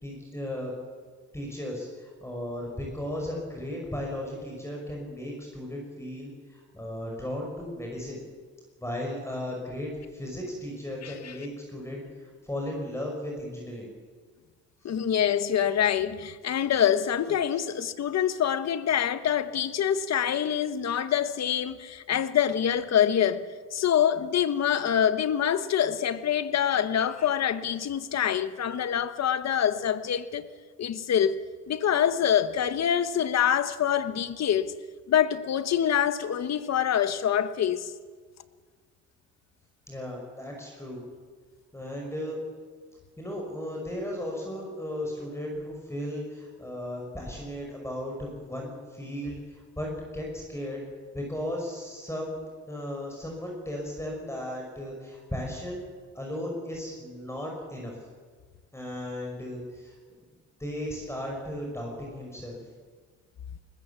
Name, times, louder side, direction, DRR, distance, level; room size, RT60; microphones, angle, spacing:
voice 1, 0.0-0.7 1.3-8.2 8.8-12.0 12.4-13.9 14.8-14.9 17.5-17.6 39.9-41.0 41.7-42.4 43.2-50.8 51.1-55.9 56.1-58.0 58.7-60.0 60.6-62.6, left 1 dB, 10° left, 5.9 m, -36 dB
voice 2, 11.0-11.3 14.8-23.4 23.7-30.4 30.8-31.4 31.7-34.7 35.1-37.9, left 9 dB, 60° left, 1.4 m, -25 dB
20.5 x 20.5 x 7.2 m
cardioid pair, 90°, 30 cm